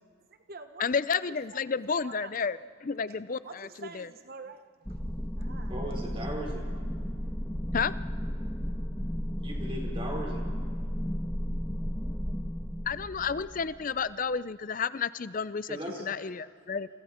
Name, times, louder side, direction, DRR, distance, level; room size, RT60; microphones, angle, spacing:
voice 1, 0.3-1.4 1.9-2.3 3.4-5.0 5.4-6.3, right 4 dB, 45° right, 1.1 m, -47 dB
voice 2, 0.8-4.1 7.7-7.9 12.9-16.9, left 6 dB, 40° left, 0.5 m, -31 dB
sound 1, 4.8-14.1, equal, 10° left, 1.3 m, -34 dB
voice 3, 5.7-6.6 9.4-10.4 15.7-16.0, right 1 dB, 25° right, 4.4 m, -37 dB
28.5 x 28.5 x 4.4 m
head